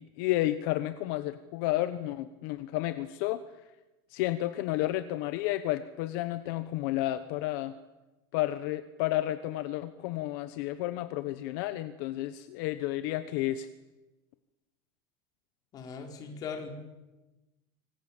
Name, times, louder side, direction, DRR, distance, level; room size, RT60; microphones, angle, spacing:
voice 1, 0.0-3.4 4.1-7.7 8.3-13.7, left 15 dB, 65° left, 12 dB, 1.2 m, -31 dB
voice 2, 15.7-16.7, left 6 dB, 30° left, 4 dB, 4.4 m, -39 dB
25.5 x 25.5 x 7.4 m, 1.1 s
cardioid pair, 170°, 12 cm